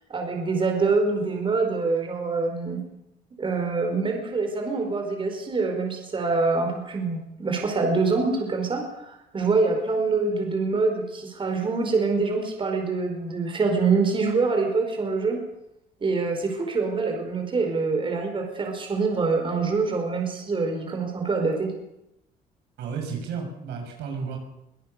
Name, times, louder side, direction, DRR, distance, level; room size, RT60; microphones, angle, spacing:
voice 1, 0.1-2.8 3.4-15.4 16.0-21.7, right 4 dB, 30° right, 3 dB, 4.8 m, -25 dB
voice 2, 22.8-24.4, right 5 dB, 80° right, 2 dB, 6.7 m, -32 dB
24.0 x 17.5 x 6.8 m, 0.83 s
cardioid pair, 110°, 17 cm